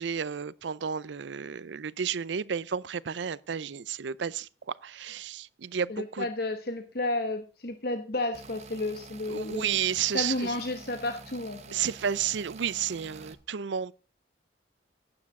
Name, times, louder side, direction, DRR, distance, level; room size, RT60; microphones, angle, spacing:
voice 1, 0.0-4.5 4.8-6.3 9.3-10.5 11.7-13.9, right 8 dB, 75° right, 0.5 m, -32 dB
voice 2, 5.9-9.7 10.1-11.8, left 2 dB, 55° left, 1.1 m, -32 dB
sound 1, 8.3-13.3, right 4 dB, 35° right, 1.0 m, -48 dB
12.0 x 9.7 x 3.6 m
head